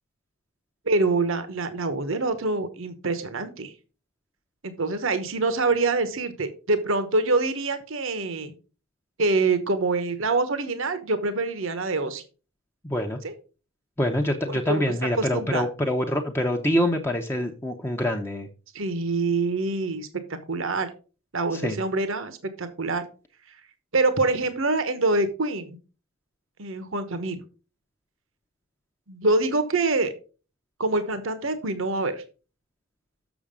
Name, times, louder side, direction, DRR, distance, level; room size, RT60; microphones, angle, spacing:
voice 1, 0.9-3.7 4.6-8.5 9.2-12.2 13.2-13.3 14.5-15.7 18.7-20.1 20.5-20.9 21.3-23.0 23.9-25.8 26.6-27.4 29.1-30.1 30.8-32.2, right 3 dB, 65° right, 11 dB, 1.0 m, -25 dB
voice 2, 12.8-13.2 14.0-18.5 21.5-21.8, left 1 dB, 10° left, 3 dB, 0.7 m, -25 dB
7.2 x 6.3 x 4.9 m, 0.35 s
head